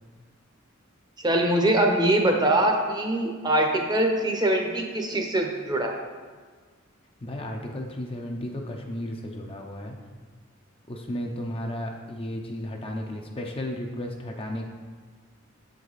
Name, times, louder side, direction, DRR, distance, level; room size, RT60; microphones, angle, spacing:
voice 1, 1.2-6.0, right 1 dB, 20° right, 2 dB, 0.8 m, -23 dB
voice 2, 7.2-9.9 10.9-14.7, left 1 dB, 25° left, 2 dB, 0.6 m, -34 dB
7.6 x 4.8 x 4.0 m, 1.6 s
head